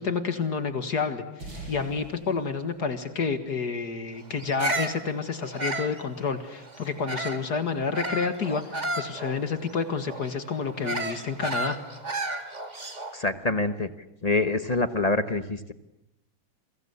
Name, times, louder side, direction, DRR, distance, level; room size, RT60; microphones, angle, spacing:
voice 1, 0.0-11.8, left 5 dB, 55° left, 9 dB, 2.2 m, -29 dB
sound 1, 1.4-4.2, right 2 dB, 75° right, 9.0 m, -44 dB
Bird vocalization bird call bird song, 4.4-7.5 7.9-13.2, right 2 dB, 20° right, 1.9 m, -33 dB
voice 2, 13.1-13.9 14.2-15.7, left 2 dB, 30° left, 10 dB, 0.8 m, -25 dB
29.5 x 23.0 x 8.4 m, 0.86 s
omnidirectional pair, 2.2 m